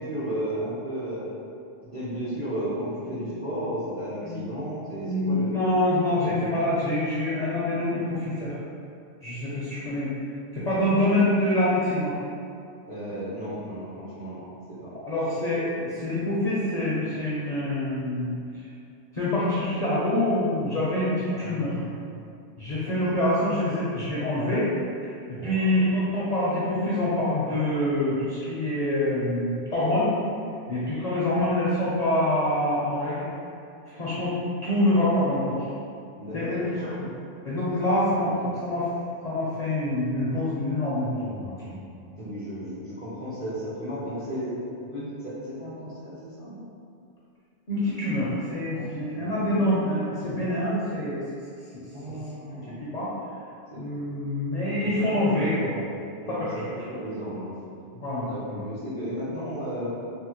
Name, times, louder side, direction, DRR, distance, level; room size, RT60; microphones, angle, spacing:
voice 1, 0.0-1.3 1.9-5.6 6.2-6.5 10.6-10.8 12.9-14.4 14.7-14.9 21.3-22.2 22.8-23.2 25.4-25.8 36.2-37.0 38.1-38.5 42.2-46.6 48.7-49.3 51.9-52.8 53.7-53.9 54.8-55.9 56.2-57.5 58.3-59.9, equal, 35° right, -10 dB, 0.5 m, -34 dB
voice 2, 5.0-8.5 9.2-10.1 10.5-12.1 15.1-18.7 19.1-21.7 22.6-24.7 25.0-30.1 30.7-33.3 33.9-34.3 34.6-35.7 36.3-36.9 37.4-38.9 39.2-42.1 47.7-51.2 51.7-51.8 52.8-53.1 53.7-55.8 56.3-56.5 57.9-58.6, left 1 dB, 55° left, -9 dB, 0.5 m, -26 dB
3.5 x 2.1 x 2.9 m, 2.4 s
omnidirectional pair, 1.2 m